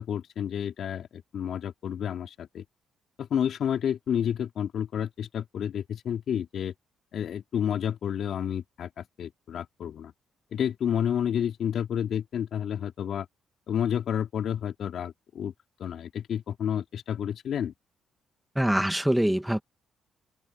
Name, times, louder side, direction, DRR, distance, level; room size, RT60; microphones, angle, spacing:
voice 1, 0.0-2.6 3.2-6.7 7.1-10.1 10.5-13.3 13.7-15.5 15.8-17.7, left 9 dB, 65° left, 4.6 m, -30 dB
voice 2, 18.6-19.6, right 1 dB, 5° right, 2.2 m, -24 dB
cardioid pair, 90°, 0 cm